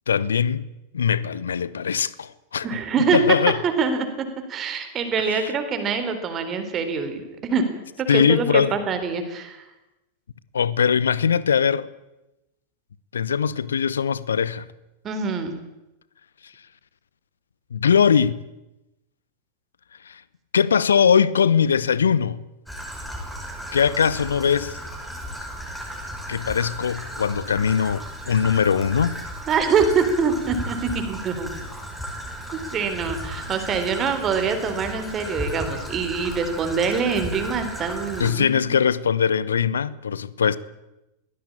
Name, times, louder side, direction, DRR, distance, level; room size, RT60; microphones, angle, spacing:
voice 1, 0.1-0.6 0.9-2.7 3.1-3.6 5.2-5.5 8.1-8.8 10.5-11.9 13.1-14.7 16.4-16.5 17.7-18.4 20.0-20.2 20.5-22.4 23.7-24.8 26.3-29.2 38.2-40.6, left 7 dB, 70° left, 0.9 m, -21 dB
voice 2, 2.6-3.2 3.8-4.1 4.5-7.6 8.0-9.6 15.0-15.5 29.5-31.5 32.7-38.7, right 5 dB, 30° right, 3.7 m, -24 dB
Traffic noise roadway noise / Trickle dribble, 22.7-38.3, equal, ahead, 6.0 m, -35 dB
22.5 x 17.0 x 8.7 m
figure-of-eight pair, 90°, 0 cm